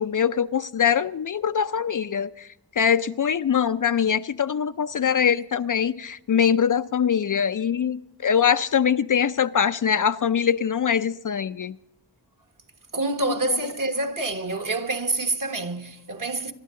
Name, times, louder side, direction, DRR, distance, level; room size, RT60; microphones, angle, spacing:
voice 1, 0.0-2.5 2.8-11.7 13.5-13.6, left 8 dB, 50° left, 0.5 m, -23 dB
voice 2, 12.9-16.5, right 2 dB, 50° right, 1.4 m, -27 dB
24.0 x 12.0 x 3.7 m
wide cardioid pair, 65°, 43 cm